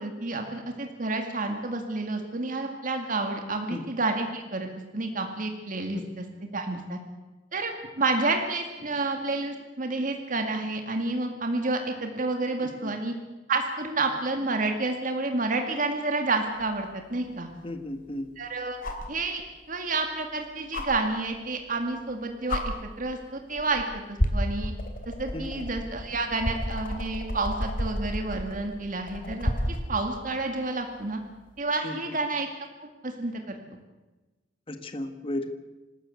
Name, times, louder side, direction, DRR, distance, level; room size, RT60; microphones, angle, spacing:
voice 1, 0.0-4.7 4.9-6.2 6.5-7.0 7.5-13.1 13.5-17.5 18.4-18.8 19.1-19.4 19.7-24.7 25.1-29.5 29.9-31.2 31.6-32.5 32.8-33.6, right 3 dB, 45° right, 4 dB, 2.1 m, -30 dB
sound 1, 16.6-16.7 18.8-19.1 20.7-20.9 22.0-22.1 22.5-22.6 23.6-23.8 24.2-29.9 31.5-31.6, left 1 dB, 50° left, 3.1 m, -30 dB
voice 2, 17.6-18.3 25.3-25.6 31.8-32.2 34.7-35.5, left 1 dB, 30° left, 7 dB, 1.5 m, -34 dB
26.5 x 13.0 x 8.3 m, 1.2 s
head